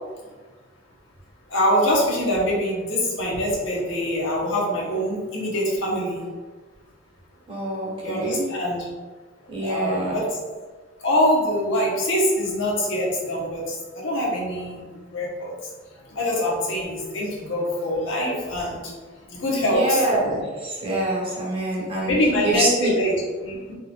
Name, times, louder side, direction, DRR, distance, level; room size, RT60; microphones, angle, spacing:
voice 1, 1.5-6.2 8.0-8.9 9.6-10.3 11.0-14.8 15.1-15.5 16.1-19.0 19.3-20.0 22.1-23.7, equal, 75° left, -4 dB, 1.1 m, -24 dB
voice 2, 7.5-8.5 9.5-10.2 19.6-22.1 22.4-23.0, right 2 dB, 25° right, -5 dB, 1.1 m, -25 dB
4.2 x 3.7 x 2.5 m, 1.4 s
head